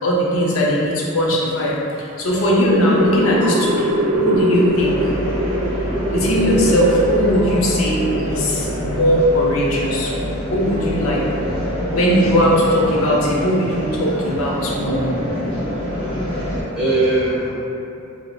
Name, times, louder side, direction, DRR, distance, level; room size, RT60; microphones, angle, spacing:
voice 1, 0.0-5.1 6.1-10.1 10.5-11.3 11.9-15.1, equal, 80° left, -4 dB, 0.5 m, -19 dB
sound 1, 2.3-9.5, right 1 dB, 80° right, 0.4 m, -23 dB
sound 2, 4.7-16.6, equal, 55° left, 1.2 m, -26 dB
voice 2, 5.8-6.2 12.2-12.3 16.2-17.5, right 2 dB, 5° right, -13 dB, 1.0 m, -22 dB
3.0 x 2.0 x 2.3 m, 2.7 s
head